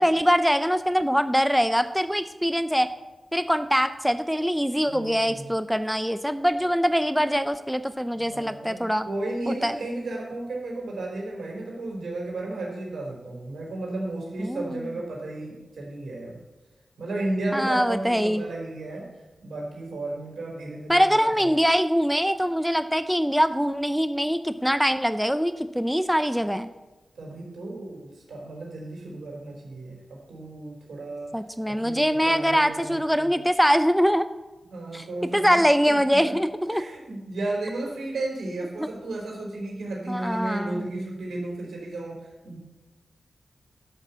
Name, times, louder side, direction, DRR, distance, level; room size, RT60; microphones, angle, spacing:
voice 1, 0.0-2.9 3.3-9.1 9.5-9.7 14.4-14.9 17.5-18.4 20.9-26.7 31.3-34.2 34.9-35.0 35.3-36.8 38.8-38.9 40.1-40.9, equal, ahead, 11 dB, 0.6 m, -23 dB
voice 2, 4.8-5.5 8.1-16.4 17.0-19.1 19.4-21.4 27.1-31.3 31.7-33.4 34.7-35.6 35.9-36.3 36.7-42.6, right 2 dB, 80° right, -2 dB, 4.1 m, -34 dB
11.5 x 6.5 x 7.1 m, 1.1 s
cardioid pair, 45°, 0 cm